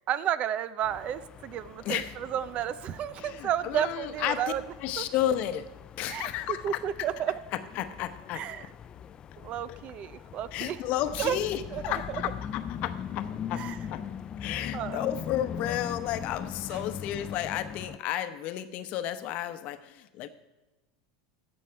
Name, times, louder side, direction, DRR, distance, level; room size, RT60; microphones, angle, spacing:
voice 1, 0.1-4.6 5.0-5.1 6.1-7.3 8.3-8.7 9.4-10.8 11.2-11.4 11.7-11.8 12.1-12.2 13.5-13.8 14.7-15.1 16.7-16.8, right 10 dB, 45° right, 16 dB, 0.6 m, -32 dB
sound 1, 0.8-18.0, left 8 dB, 30° left, 0.4 m, -41 dB
voice 2, 3.2-4.4 4.8-5.7 6.0-6.6 7.8-8.4 10.5-14.0 14.4-20.3, left 11 dB, 55° left, 10 dB, 0.8 m, -32 dB
15.5 x 6.3 x 4.6 m, 1.1 s
hypercardioid pair, 105°, 3 cm